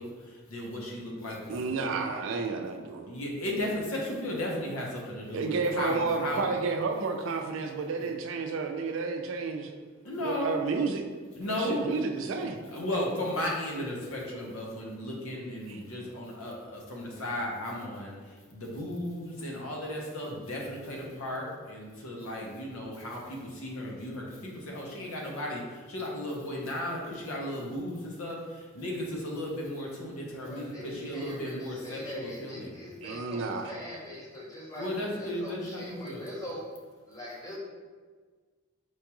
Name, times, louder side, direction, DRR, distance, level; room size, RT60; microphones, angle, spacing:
voice 1, 0.0-2.0 3.1-6.5 10.0-10.6 11.4-11.8 12.7-32.8 34.8-36.2, left 1 dB, 90° left, -2 dB, 0.9 m, -35 dB
voice 2, 1.5-3.1 5.3-9.7 10.2-11.0 11.4-12.6 15.7-15.8 33.0-33.7, right 4 dB, 65° right, 4 dB, 0.4 m, -31 dB
voice 3, 30.5-36.7 37.1-37.6, left 1 dB, 15° left, -5 dB, 0.8 m, -42 dB
4.5 x 2.3 x 2.9 m, 1.5 s
head